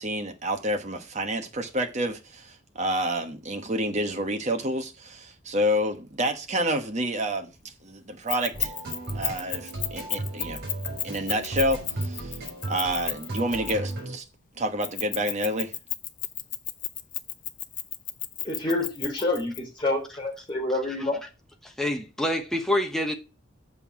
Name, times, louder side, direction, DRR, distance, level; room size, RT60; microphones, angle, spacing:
voice 1, 0.0-7.5 7.8-8.7 9.1-10.6 11.0-12.4 12.7-14.2 14.6-15.7, equal, 35° right, 1.1 m, -28 dB
Keys jangling, 8.3-14.0 14.8-19.6, left 12 dB, 40° left, 0.7 m, -32 dB
sound 1, 8.5-14.2, right 2 dB, 50° right, 4.1 m, -35 dB
voice 2, 18.4-21.2, left 2 dB, 25° left, 3.3 m, -28 dB
voice 3, 21.6-23.1, left 1 dB, ahead, 1.0 m, -26 dB
6.9 x 5.5 x 5.8 m
head